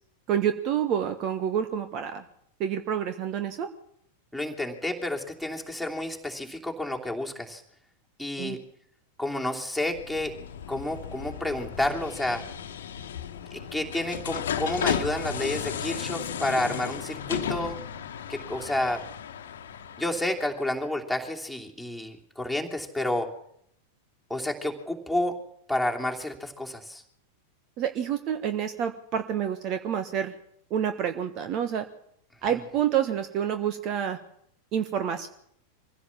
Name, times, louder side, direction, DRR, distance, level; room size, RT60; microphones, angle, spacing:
voice 1, 0.3-2.2 2.6-3.7 8.4-8.6 27.8-30.3 30.7-31.9 32.4-34.2 34.7-35.3, right 9 dB, 35° right, 9 dB, 1.4 m, -28 dB
voice 2, 4.3-7.6 8.2-8.6 9.2-10.3 10.7-12.4 13.5-17.8 18.3-19.0 20.0-23.3 24.3-25.4 25.7-27.0, left 1 dB, ahead, 3 dB, 3.0 m, -30 dB
sound 1, 9.8-20.6, left 8 dB, 60° left, 1.3 m, -34 dB
24.0 x 16.0 x 7.2 m, 0.71 s
figure-of-eight pair, 90°, 0 cm